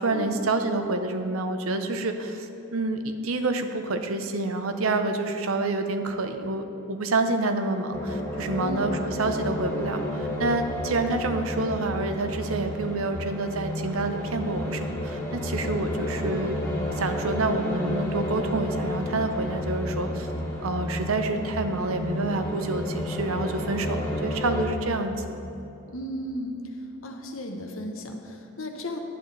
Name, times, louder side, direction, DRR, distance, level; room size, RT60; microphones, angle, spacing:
voice 1, 0.0-16.6 17.0-20.3 20.6-25.1, right 2 dB, 80° right, 7 dB, 0.7 m, -28 dB
sound 1, 7.9-24.7, left 1 dB, 15° left, 1.9 m, -31 dB
voice 2, 25.9-26.6 27.0-29.0, left 1 dB, 70° left, 4 dB, 1.0 m, -35 dB
10.5 x 8.3 x 4.0 m, 2.9 s
head